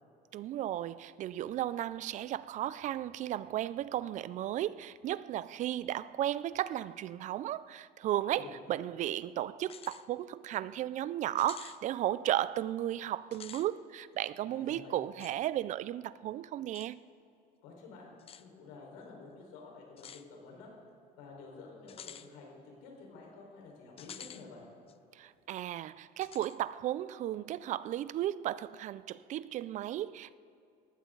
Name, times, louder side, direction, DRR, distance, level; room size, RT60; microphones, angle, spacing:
voice 1, 0.3-17.0 25.1-30.4, right 12 dB, 45° right, 0.4 m, -35 dB
voice 2, 8.3-8.8 14.5-15.0 17.6-20.7 21.2-24.7, left 4 dB, 85° left, 4.7 m, -51 dB
sound 1, 9.6-10.0 10.5-10.6 11.4-11.8 13.2-13.7 15.2-15.4 16.7-16.9 18.2-18.4 20.0-20.3 21.9-22.3 24.0-24.4 24.9-25.0 26.2-26.6, left 8 dB, 35° left, 0.6 m, -49 dB
19.5 x 15.5 x 3.9 m
cardioid pair, 110°, 17 cm